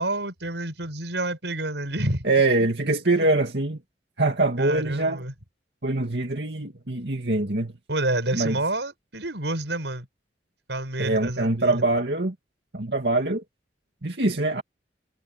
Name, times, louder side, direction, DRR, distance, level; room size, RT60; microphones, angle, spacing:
voice 1, 0.0-2.2 3.1-3.3 4.6-5.3 7.9-10.1 10.7-11.8, right 2 dB, 85° right, 6.4 m, -29 dB
voice 2, 2.2-3.8 4.2-5.2 5.8-7.7 8.3-8.6 11.0-12.3 12.7-13.4 14.0-14.6, right 2 dB, 70° right, 2.4 m, -23 dB
head